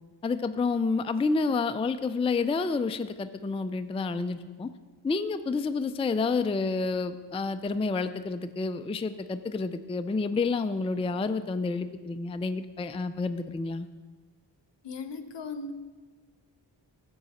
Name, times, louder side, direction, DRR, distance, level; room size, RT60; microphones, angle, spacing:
voice 1, 0.2-4.7 5.0-13.9, left 4 dB, 15° left, 10 dB, 0.3 m, -29 dB
voice 2, 14.8-15.7, left 4 dB, 65° left, 10 dB, 0.8 m, -37 dB
12.0 x 7.5 x 4.2 m, 1.3 s
cardioid pair, 60°, 45 cm